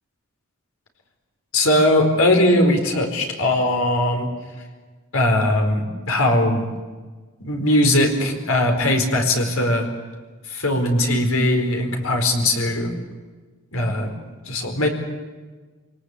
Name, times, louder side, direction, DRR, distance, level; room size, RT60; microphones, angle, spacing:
voice 1, 1.5-4.3 5.1-6.6 7.4-9.9 10.5-12.9 13.7-14.1 14.5-14.9, left 1 dB, 80° left, 4 dB, 4.5 m, -19 dB
26.0 x 19.0 x 8.3 m, 1.4 s
head